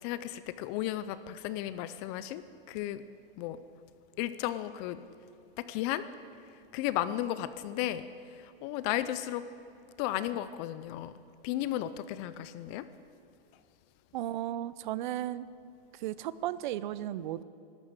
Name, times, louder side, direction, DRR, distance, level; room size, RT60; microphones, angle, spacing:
voice 1, 0.0-3.0 3.4-3.6 4.2-5.0 5.6-6.1 6.7-9.5 10.0-11.1 11.4-12.9, left 13 dB, 30° left, 14 dB, 0.5 m, -34 dB
voice 2, 14.1-15.5 15.9-17.4, right 13 dB, 55° right, 17 dB, 0.7 m, -35 dB
13.0 x 12.5 x 8.9 m, 2.6 s
supercardioid pair, 155°, 29 cm